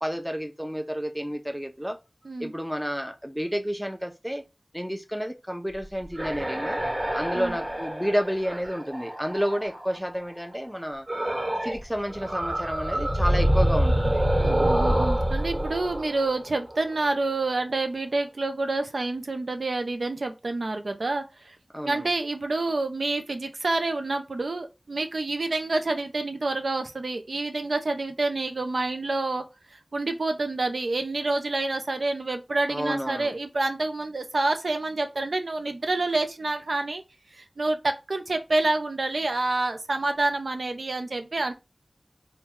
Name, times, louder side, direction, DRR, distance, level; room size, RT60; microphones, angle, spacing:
voice 1, 0.0-2.0 2.4-4.4 4.7-6.8 7.1-11.1 11.6-14.2 21.7-22.1 32.7-33.3, equal, 5° right, 0.6 m, -30 dB
sound 1, 5.8-10.0 11.1-11.8 12.1-17.0, right 1 dB, 50° right, 1.4 m, -26 dB
voice 2, 14.4-21.6 21.8-29.4 29.7-37.0 37.3-41.5, right 2 dB, 80° right, 0.4 m, -28 dB
3.0 x 2.2 x 3.6 m
wide cardioid pair, 50°, 0 cm